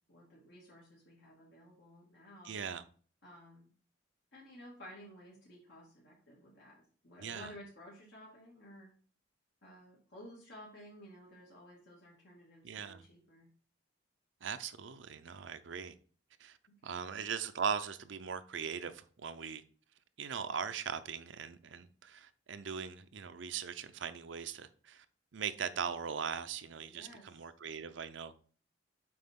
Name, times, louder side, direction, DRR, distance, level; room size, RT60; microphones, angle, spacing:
voice 1, 0.1-2.6 3.2-3.7 4.3-8.9 9.6-13.5 16.7-17.0 26.9-27.5, equal, 65° left, 2.4 m, -54 dB
voice 2, 2.4-2.8 7.2-7.5 12.6-13.1 14.4-15.9 16.4-16.6 16.8-19.6 20.2-25.0 25.3-28.3, right 6 dB, 70° right, 0.5 m, -40 dB
7.7 x 5.0 x 3.6 m
head